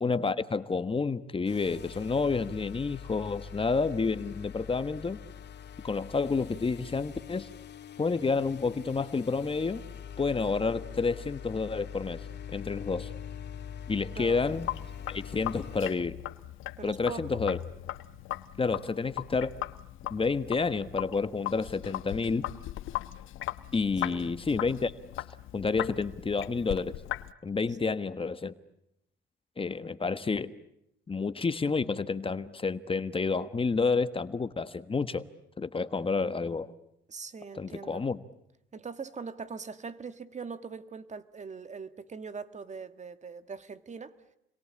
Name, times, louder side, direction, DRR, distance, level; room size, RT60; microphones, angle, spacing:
voice 1, 0.0-5.2 5.8-7.5 8.0-9.8 10.2-12.2 12.5-13.1 13.9-14.7 15.1-16.2 16.8-17.6 18.6-19.5 20.1-22.5 23.7-24.9 25.5-26.9 27.4-28.5 29.6-30.5 31.1-35.2 35.6-36.7 37.5-38.2, left 4 dB, 25° left, 12 dB, 1.3 m, -29 dB
sound 1, 1.4-15.9, left 8 dB, 60° left, 2.5 m, -43 dB
voice 2, 14.1-14.5 16.8-17.4 24.1-24.2 37.1-38.0 38.7-44.1, right 5 dB, 35° right, 11 dB, 1.8 m, -42 dB
Sink (filling or washing), 14.4-27.3, left 15 dB, 90° left, 1.0 m, -39 dB
29.5 x 23.0 x 8.6 m, 0.81 s
cardioid pair, 90°, 20 cm